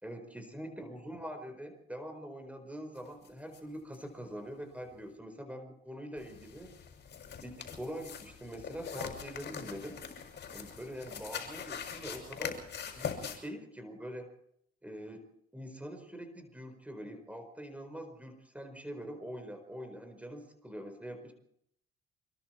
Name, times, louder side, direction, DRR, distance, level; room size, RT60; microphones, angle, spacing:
voice 1, 0.0-6.7 7.4-10.0 10.5-12.6 12.9-14.3 14.8-15.3 15.5-21.3, equal, 5° right, 6 dB, 4.8 m, -44 dB
sound 1, 3.2-3.3 3.5-3.6 3.9-4.0 6.2-13.4, left 7 dB, 60° left, 6.2 m, -42 dB
26.0 x 23.0 x 4.6 m, 0.72 s
cardioid pair, 90°, 20 cm